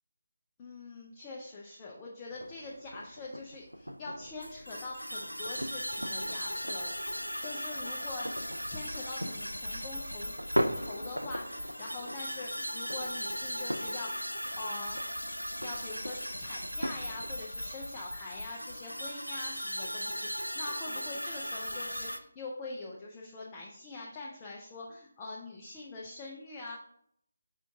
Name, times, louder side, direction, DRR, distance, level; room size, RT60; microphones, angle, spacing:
voice 1, 0.6-15.0 15.6-26.8, left 3 dB, 15° left, -3 dB, 0.4 m, -44 dB
sound 1, 2.3-17.3, equal, 85° right, 0.3 m, -40 dB
sound 2, 4.4-22.2, equal, 90° left, 0.4 m, -38 dB
4.5 x 2.5 x 3.4 m, 0.69 s
figure-of-eight pair, 155°, 0 cm